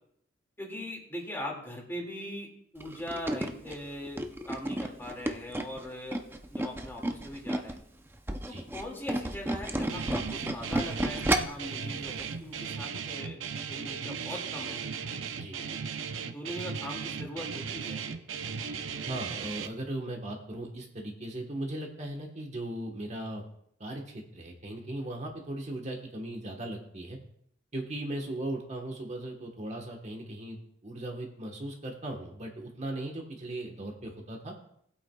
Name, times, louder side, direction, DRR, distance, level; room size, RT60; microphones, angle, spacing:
voice 1, 0.6-4.2 4.5-6.2 6.5-7.8 8.5-14.8 15.6-15.8 16.2-18.1, left 1 dB, 10° left, -1 dB, 2.2 m, -40 dB
Tools, 2.8-7.8 8.1-11.7 12.1-12.3 12.6-12.7, right 1 dB, 10° right, 0.6 m, -32 dB
Guitar, 9.9-19.7, right 6 dB, 85° right, 0.7 m, -37 dB
voice 2, 19.1-23.4 23.8-27.2 27.7-30.6 30.8-34.5, right 1 dB, 35° right, 1 dB, 1.3 m, -38 dB
19.0 x 8.6 x 2.3 m, 0.71 s
head